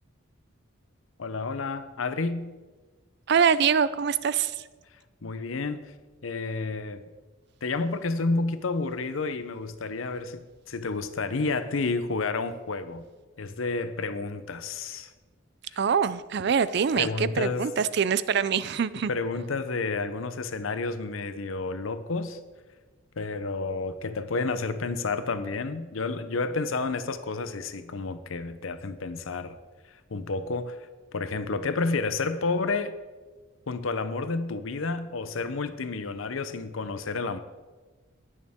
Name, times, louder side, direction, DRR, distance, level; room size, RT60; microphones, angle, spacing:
voice 1, 1.2-2.5 5.2-5.9 6.2-7.0 7.6-13.0 13.4-15.1 17.0-17.7 19.1-22.4 23.2-29.6 30.1-32.9 33.7-37.4, left 3 dB, 85° left, 11 dB, 0.7 m, -30 dB
voice 2, 3.3-4.5 15.8-19.1, right 6 dB, 55° right, 16 dB, 0.4 m, -24 dB
19.0 x 6.5 x 3.6 m, 1.3 s
head